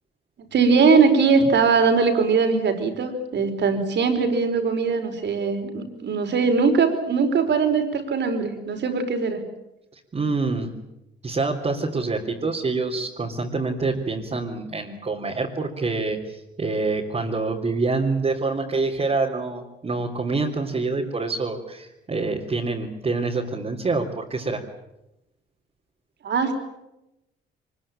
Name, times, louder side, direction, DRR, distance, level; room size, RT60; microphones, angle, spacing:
voice 1, 0.5-9.4 26.2-26.5, right 5 dB, 60° right, 6 dB, 5.0 m, -20 dB
voice 2, 10.1-10.7 11.2-24.6, right 3 dB, 35° right, -3 dB, 3.5 m, -26 dB
24.0 x 21.5 x 9.0 m, 0.91 s
cardioid pair, 90°, 20 cm